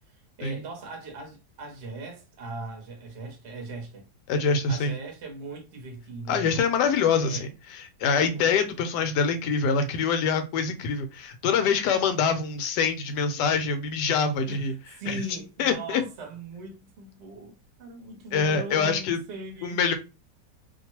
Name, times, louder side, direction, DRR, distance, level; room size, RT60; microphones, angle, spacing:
voice 1, 0.4-4.1 4.7-6.5 7.1-7.5 8.0-8.5 14.4-19.8, right 2 dB, 50° right, 0.9 m, -39 dB
voice 2, 4.3-4.9 6.3-14.7 15.1-15.2 15.6-16.0 18.3-19.2 19.6-19.9, left 5 dB, 75° left, 1.1 m, -25 dB
2.9 x 2.1 x 2.9 m
omnidirectional pair, 1.9 m